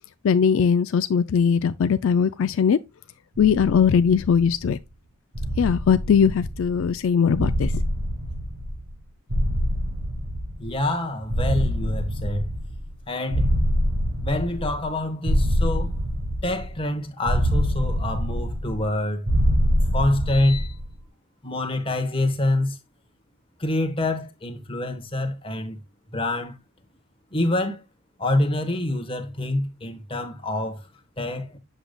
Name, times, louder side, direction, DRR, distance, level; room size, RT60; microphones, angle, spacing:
voice 1, 0.2-2.8 3.4-4.8 5.6-7.7, left 7 dB, 70° left, 0.4 m, -20 dB
sound 1, 3.4-4.7 5.3-6.9 7.3-9.0 9.3-10.9 11.3-13.0 13.3-14.9 15.3-16.8 17.3-18.9 19.3-20.9, equal, 75° right, 2.7 m, -25 dB
voice 2, 10.6-12.5 13.1-13.5 14.2-15.9 16.4-19.3 19.9-20.7 21.4-22.8 23.6-25.8 26.1-26.5 27.3-27.8 28.2-30.9 31.2-31.6, left 1 dB, 25° left, 1.2 m, -26 dB
8.0 x 6.5 x 2.2 m
head